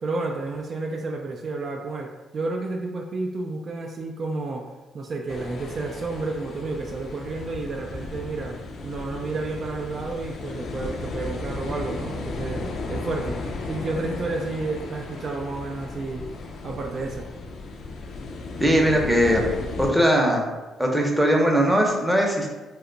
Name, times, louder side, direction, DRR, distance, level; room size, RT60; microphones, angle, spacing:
voice 1, 0.0-4.6 4.9-16.3 16.6-17.3, right 3 dB, 50° right, 1 dB, 0.3 m, -31 dB
sound 1, 5.3-19.9, left 3 dB, 55° left, 0.4 m, -35 dB
voice 2, 18.6-19.5 19.8-20.5 20.8-22.6, equal, 5° right, 0 dB, 0.7 m, -20 dB
2.8 x 2.2 x 3.8 m, 1.1 s
cardioid pair, 90°, 0 cm